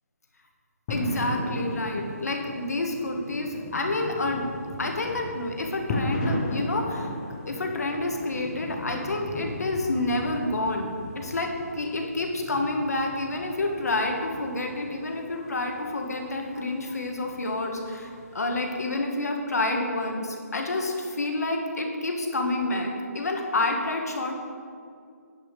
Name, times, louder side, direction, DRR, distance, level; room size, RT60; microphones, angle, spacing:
voice 1, 0.9-4.5 4.8-7.1 7.5-24.4, left 2 dB, 65° left, 2 dB, 1.7 m, -29 dB
sound 1, 0.9-18.9, left 1 dB, 15° left, 0.6 m, -36 dB
10.0 x 5.6 x 6.6 m, 2.3 s
hypercardioid pair, 175°, 9 cm